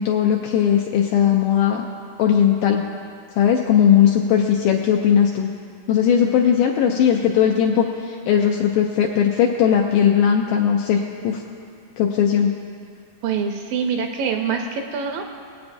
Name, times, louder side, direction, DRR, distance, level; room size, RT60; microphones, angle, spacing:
voice 1, 0.0-1.9 2.2-2.8 3.4-5.5 5.9-11.4 12.0-12.5, left 8 dB, 80° left, 1 dB, 1.9 m, -18 dB
voice 2, 13.2-15.3, right 6 dB, 80° right, 4 dB, 2.1 m, -25 dB
22.0 x 8.5 x 2.6 m, 2.3 s
omnidirectional pair, 4.3 m